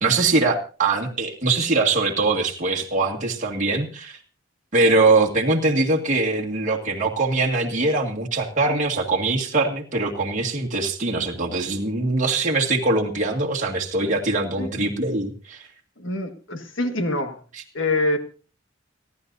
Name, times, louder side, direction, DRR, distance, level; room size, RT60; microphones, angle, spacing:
voice 1, 0.0-4.2 4.7-15.7, right 3 dB, 40° right, -1 dB, 2.0 m, -22 dB
voice 2, 14.6-14.9 16.0-17.4 17.7-18.2, left 2 dB, 70° left, 7 dB, 1.7 m, -25 dB
29.5 x 11.0 x 2.7 m, 0.37 s
head